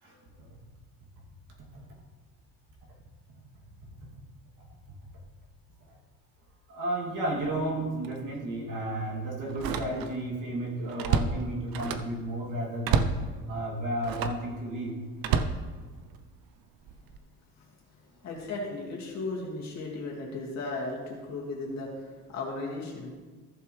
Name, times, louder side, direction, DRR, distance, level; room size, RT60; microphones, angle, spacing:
voice 1, 0.0-0.5 1.6-1.7 4.6-4.7 6.7-13.2 13.5-15.0, right 1 dB, 55° right, -3 dB, 2.7 m, -33 dB
Slam, 7.4-7.6 8.0-8.2 9.5-10.3 10.6-12.2 12.8-13.3 14.0-14.5 15.2-16.3 16.9-17.2, right 6 dB, 75° right, 0.7 m, -29 dB
voice 2, 18.2-23.1, left 2 dB, 50° left, -3 dB, 2.3 m, -36 dB
15.0 x 6.9 x 3.3 m, 1.4 s
cardioid pair, 150°, 36 cm